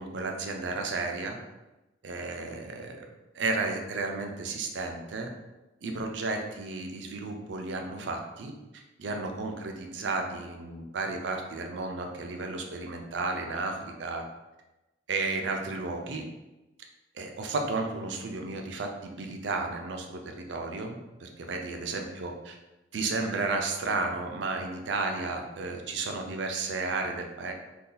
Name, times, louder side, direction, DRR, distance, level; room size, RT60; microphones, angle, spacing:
voice 1, 0.0-1.4 2.0-3.0 3.3-5.3 5.8-8.5 9.0-14.2 15.1-16.2 17.1-22.6 22.9-27.5, right 3 dB, 75° right, 3 dB, 0.5 m, -33 dB
2.7 x 2.3 x 3.8 m, 1.0 s
head